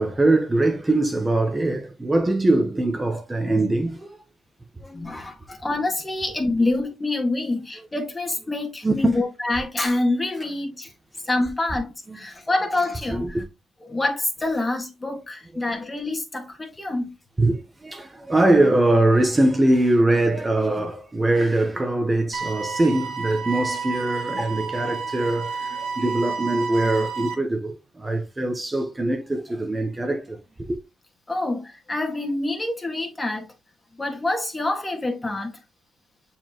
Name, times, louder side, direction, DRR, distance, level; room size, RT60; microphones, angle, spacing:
voice 1, 0.0-4.2 8.8-9.1 12.1-12.2 13.2-13.5 15.5-15.6 17.4-30.4, right 2 dB, 20° right, 1.0 m, -22 dB
voice 2, 4.8-10.9 11.3-13.4 13.8-17.1 31.3-33.5 34.0-35.5, left 2 dB, 20° left, 2.0 m, -26 dB
sound 1, 22.3-27.3, right 5 dB, 70° right, 1.4 m, -30 dB
7.1 x 4.6 x 3.0 m
cardioid pair, 90°, 0 cm